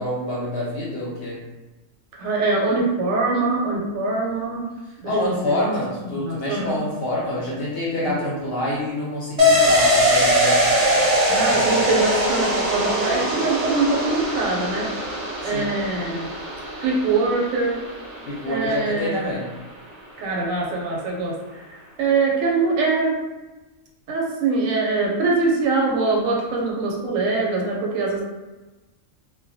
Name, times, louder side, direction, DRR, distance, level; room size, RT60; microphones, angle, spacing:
voice 1, 0.0-1.4 5.0-10.6 11.3-11.8 15.4-15.7 18.3-19.5, left 1 dB, 55° left, -5 dB, 0.8 m, -27 dB
voice 2, 2.1-4.7 5.0-6.8 8.1-8.2 11.3-14.9 15.4-16.3 16.8-17.8 18.5-19.3 20.2-21.3 21.7-23.2 24.1-28.2, right 3 dB, 85° right, -2 dB, 1.0 m, -23 dB
sound 1, 9.4-18.8 19.1-19.2, equal, 50° right, 0.4 m, -21 dB
2.2 x 2.1 x 2.6 m, 1.1 s
omnidirectional pair, 1.4 m